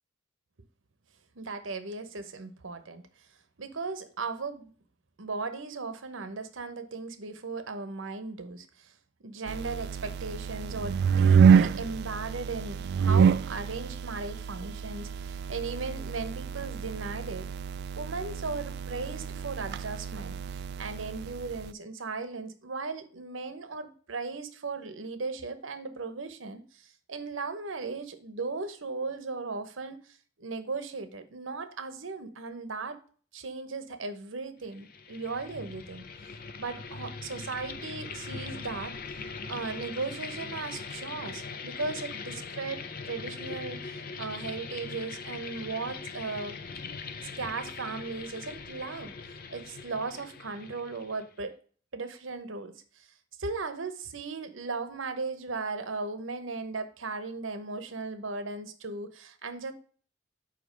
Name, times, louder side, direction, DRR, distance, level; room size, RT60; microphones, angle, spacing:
voice 1, 1.4-3.0 3.6-4.7 5.2-8.9 9.2-17.5 18.0-33.0 33.3-36.0 36.6-38.9 39.5-46.6 47.2-49.1 49.5-51.6 51.9-53.1 53.4-59.7, right 4 dB, 75° right, 10 dB, 0.9 m, -37 dB
sound 1, 9.5-21.7, right 6 dB, 55° right, 0.3 m, -27 dB
sound 2, 34.7-51.4, left 5 dB, 50° left, 0.6 m, -41 dB
5.2 x 4.7 x 6.3 m, 0.43 s
head